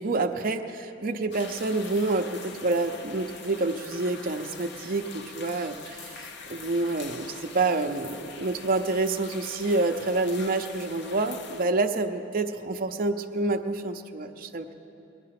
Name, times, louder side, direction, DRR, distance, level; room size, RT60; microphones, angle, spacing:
voice 1, 0.0-14.7, right 3 dB, 45° right, 4 dB, 0.6 m, -28 dB
sound 1, 1.3-11.6, left 4 dB, 60° left, 0.8 m, -43 dB
20.0 x 10.5 x 5.9 m, 2.8 s
head